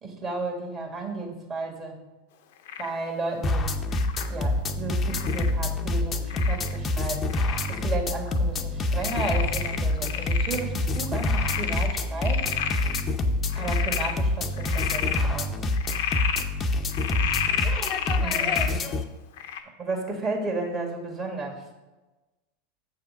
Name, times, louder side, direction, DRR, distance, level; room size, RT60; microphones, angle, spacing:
voice 1, 0.0-2.0 2.8-3.7 4.3-7.3 7.7-12.5 13.5-15.5 18.2-18.8 19.8-21.6, right 3 dB, 35° right, 0 dB, 1.8 m, -33 dB
Frog, 2.7-3.0 3.9-4.3 5.1-5.5 6.3-6.8 7.3-7.8 8.3-8.4 9.0-10.6 11.0-13.0 13.5-14.1 14.6-15.2 15.7-16.4 16.9-18.7 19.4-19.6, left 9 dB, 70° left, 0.6 m, -31 dB
sound 1, 3.4-19.0, left 2 dB, 30° left, 0.6 m, -27 dB
7.1 x 3.5 x 5.4 m, 1.1 s
hypercardioid pair, 100°, 0 cm